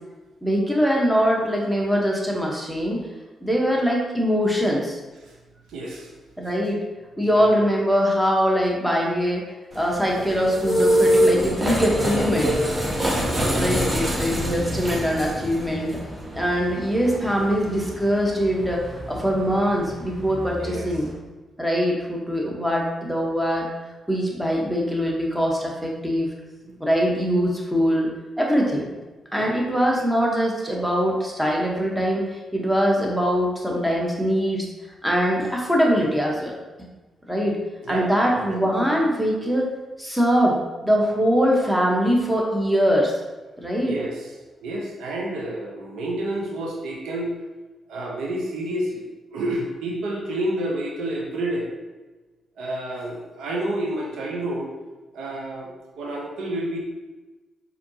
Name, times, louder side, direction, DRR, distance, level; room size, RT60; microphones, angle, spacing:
voice 1, 0.4-3.0 3.4-5.0 6.4-6.8 7.2-9.4 9.7-12.5 13.6-15.9 16.3-21.1 21.6-23.7 24.1-26.3 26.8-28.1 28.4-28.9 29.3-34.6 35.0-36.5 37.3-37.5 37.9-39.7 40.0-43.1 43.6-43.9, equal, 5° right, -2 dB, 1.0 m, -22 dB
voice 2, 5.7-6.1 7.2-7.4 13.3-13.8 20.6-20.9 26.6-26.8 29.4-29.5 37.8-38.1 43.8-44.3 44.6-47.3 47.9-51.7 52.6-54.7 55.1-55.7 56.0-56.8, right 1 dB, 80° right, -2 dB, 0.7 m, -29 dB
sound 1, 9.7-21.1, equal, 30° right, 1.3 m, -26 dB
4.3 x 2.7 x 2.7 m, 1.2 s
supercardioid pair, 55°, 0 cm